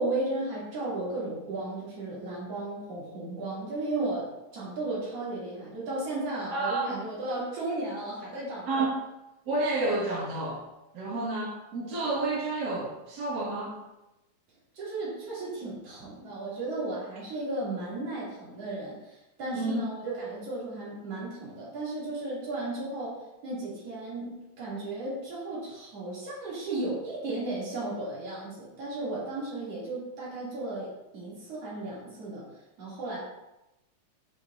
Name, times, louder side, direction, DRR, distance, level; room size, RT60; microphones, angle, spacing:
voice 1, 0.0-4.3 4.5-8.9 14.7-32.5 32.8-33.2, right 2 dB, 55° right, -8 dB, 3.5 m, -34 dB
voice 2, 6.5-7.0 8.7-9.0 9.5-10.6 10.9-13.8 19.5-19.8, right 2 dB, 40° right, -7 dB, 2.0 m, -30 dB
8.1 x 6.1 x 2.6 m, 0.96 s
omnidirectional pair, 3.3 m